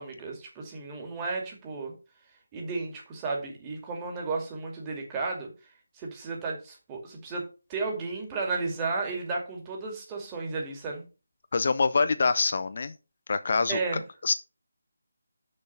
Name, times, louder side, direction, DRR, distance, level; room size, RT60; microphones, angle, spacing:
voice 1, 0.0-1.9 2.5-5.5 5.9-7.4 7.7-11.0 13.7-14.0, right 3 dB, 15° right, 2.3 m, -33 dB
voice 2, 11.5-12.9 13.3-13.8 14.2-14.3, left 4 dB, 45° left, 0.5 m, -25 dB
6.5 x 6.4 x 5.7 m
figure-of-eight pair, 155°, 0 cm